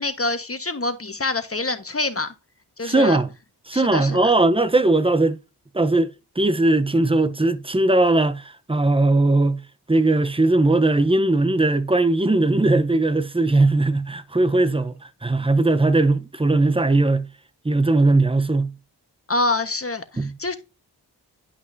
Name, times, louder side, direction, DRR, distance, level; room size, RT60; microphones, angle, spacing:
voice 1, 0.0-2.3 2.8-3.2 3.7-4.3 19.3-20.5, left 2 dB, 30° left, 1.4 m, -26 dB
voice 2, 2.8-3.3 3.7-5.4 5.7-6.1 6.4-9.6 9.9-15.0 15.2-17.3 17.6-18.7 20.2-20.4, right 2 dB, 15° right, 0.8 m, -19 dB
11.0 x 5.4 x 2.7 m
cardioid pair, 40°, 43 cm